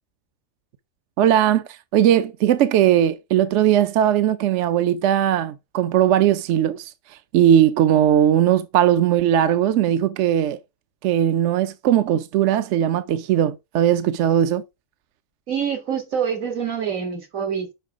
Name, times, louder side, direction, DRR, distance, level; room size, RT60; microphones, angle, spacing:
voice 1, 1.2-10.6 11.0-14.6, right 10 dB, 70° right, 0.9 m, -19 dB
voice 2, 15.5-17.7, right 7 dB, 85° right, 2.3 m, -26 dB
5.7 x 5.3 x 4.8 m
omnidirectional pair, 1.4 m